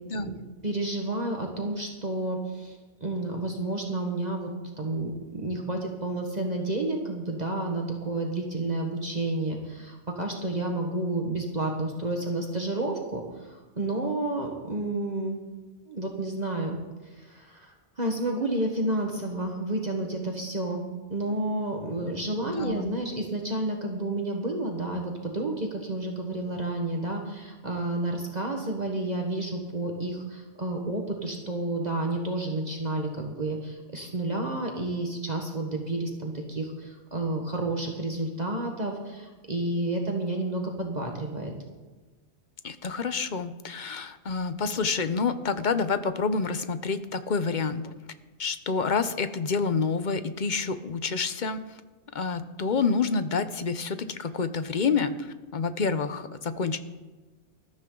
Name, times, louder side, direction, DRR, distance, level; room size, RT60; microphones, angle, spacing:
voice 1, 0.6-4.5 4.8-15.4 15.9-16.8 17.1-20.8 21.1-41.5, right 2 dB, 40° right, 1 dB, 1.5 m, -30 dB
voice 2, 22.4-23.0 42.6-47.9 48.4-51.6 52.1-56.8, left 5 dB, 45° left, 11 dB, 0.9 m, -28 dB
20.0 x 13.5 x 3.9 m, 1.2 s
omnidirectional pair, 1.2 m